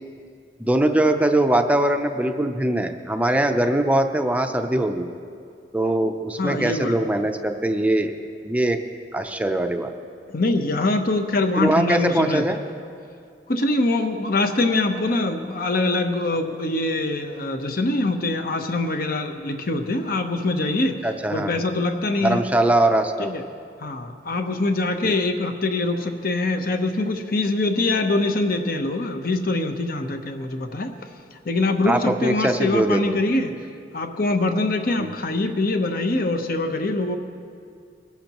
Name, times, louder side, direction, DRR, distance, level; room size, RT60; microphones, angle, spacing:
voice 1, 0.6-5.1 5.7-8.1 8.4-8.8 9.1-9.9 11.6-12.6 21.0-21.6 22.2-23.3 25.0-25.1 31.8-33.2 35.0-35.1, right 1 dB, 10° right, 6 dB, 0.5 m, -21 dB
voice 2, 6.4-7.0 10.3-12.6 13.5-21.0 21.3-22.4 23.2-23.4 23.8-30.9 31.4-33.5 33.9-37.2, left 2 dB, 55° left, 6 dB, 0.9 m, -23 dB
21.5 x 11.5 x 3.0 m, 2.3 s
head